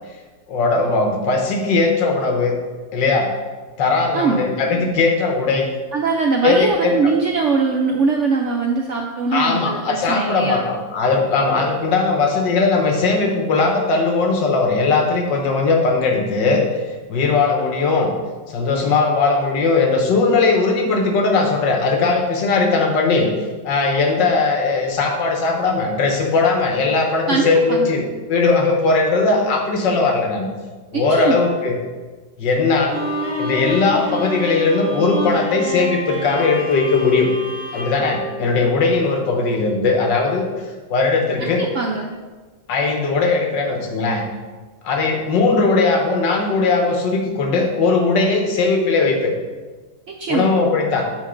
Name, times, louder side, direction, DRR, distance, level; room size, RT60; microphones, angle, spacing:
voice 1, 0.5-2.6 2.9-3.3 3.8-5.7 6.4-6.9 9.3-16.6 17.1-18.1 18.5-23.3 23.6-28.0 28.3-30.5 30.9-31.8 32.4-33.0 33.4-37.3 37.7-40.5 40.9-41.6 42.7-44.2 44.8-49.3 50.3-51.1, left 3 dB, 80° left, 3 dB, 1.7 m, -18 dB
voice 2, 4.1-4.4 5.9-10.6 27.3-28.0 30.9-31.4 41.4-42.1 50.1-50.5, right 4 dB, 65° right, 0 dB, 0.7 m, -21 dB
Bowed string instrument, 32.9-39.1, equal, 35° right, 1.4 m, -29 dB
7.2 x 4.4 x 5.1 m, 1.3 s
omnidirectional pair, 1.9 m